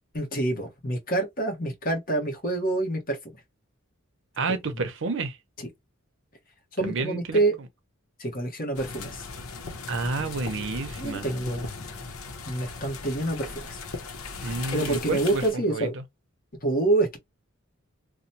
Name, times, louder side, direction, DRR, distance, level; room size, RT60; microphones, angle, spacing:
voice 1, 0.1-3.2 4.5-4.8 6.7-7.5 8.2-9.3 11.0-11.7 12.5-13.8 14.7-15.9 16.6-17.2, right 2 dB, 45° left, 1.1 m, -27 dB
voice 2, 4.4-5.4 6.8-7.4 9.9-11.3 14.4-15.4 15.7-15.9, right 3 dB, 65° right, 0.6 m, -30 dB
sound 1, 8.7-15.5, left 4 dB, 85° left, 0.8 m, -38 dB
3.0 x 2.1 x 2.6 m
head